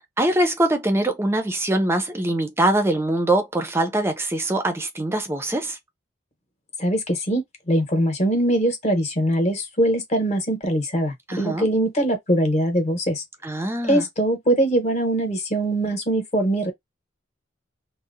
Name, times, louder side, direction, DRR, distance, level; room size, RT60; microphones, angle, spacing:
voice 1, 0.2-5.8 11.3-11.7 13.4-14.1, right 1 dB, 15° right, 0.4 m, -23 dB
voice 2, 6.8-13.2 13.8-16.7, right 1 dB, 35° left, 0.9 m, -22 dB
2.7 x 2.0 x 2.5 m
head